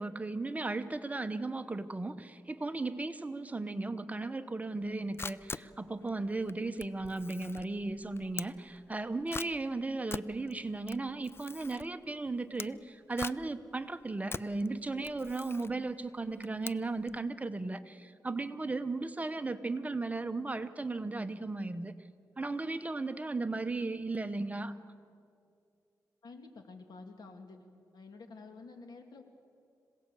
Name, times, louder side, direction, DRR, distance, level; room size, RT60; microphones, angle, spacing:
voice 1, 0.0-21.9 22.4-24.8, right 3 dB, 20° right, 9 dB, 1.0 m, -36 dB
Camera, 4.8-17.2, left 4 dB, 35° left, 0.5 m, -45 dB
voice 2, 26.2-27.6 27.9-29.2, left 3 dB, 75° left, 6 dB, 2.5 m, -50 dB
26.5 x 17.5 x 8.4 m, 2.3 s
wide cardioid pair, 95°, 7 cm